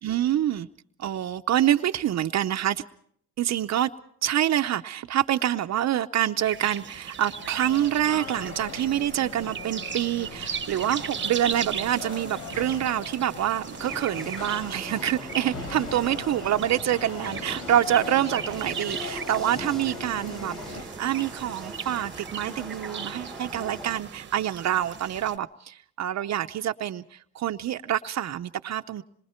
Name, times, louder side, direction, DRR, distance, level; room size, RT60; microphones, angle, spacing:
voice 1, 0.0-0.7 1.0-2.8 3.4-3.9 4.2-29.0, right 11 dB, 60° right, 0.8 m, -26 dB
sound 1, 6.4-25.4, right 7 dB, 40° right, 1.1 m, -38 dB
sound 2, 7.2-20.8, left 3 dB, 90° left, 3.7 m, -40 dB
sound 3, 13.8-24.0, equal, ahead, 1.7 m, -42 dB
26.5 x 24.0 x 4.4 m
cardioid pair, 90°, 30 cm